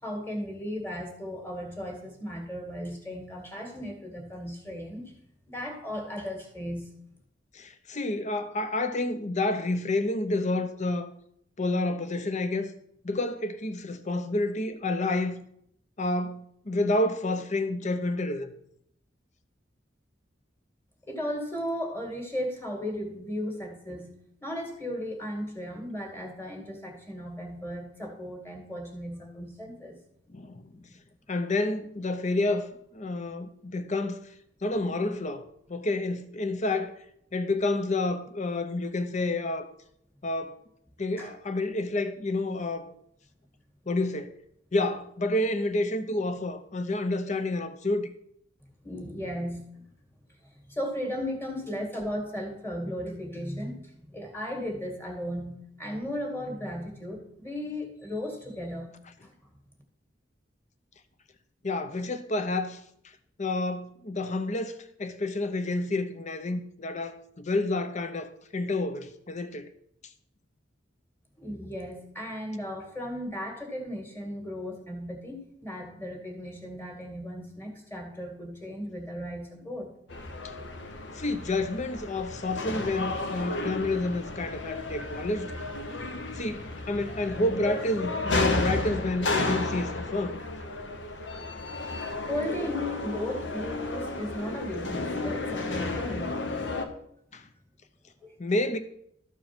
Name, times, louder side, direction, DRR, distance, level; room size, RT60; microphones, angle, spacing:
voice 1, 0.0-5.1 5.5-7.0 21.1-24.1 24.4-30.0 41.2-41.3 48.8-49.7 50.7-58.9 59.2-59.3 71.4-79.9 92.3-96.5 98.2-98.3, equal, 15° left, 2.1 m, -36 dB
voice 2, 7.5-11.1 11.6-12.7 13.0-15.4 16.0-18.5 30.3-30.9 31.3-34.3 34.6-37.0 37.3-39.7 40.2-40.6 41.0-42.9 43.9-44.3 44.7-48.1 61.6-62.8 63.4-69.7 80.4-80.5 81.1-85.5 86.3-90.4 97.3-97.5 98.4-98.8, left 2 dB, 40° left, 0.8 m, -29 dB
sound 1, 80.1-96.9, left 2 dB, 70° left, 1.1 m, -33 dB
13.0 x 4.7 x 6.0 m
head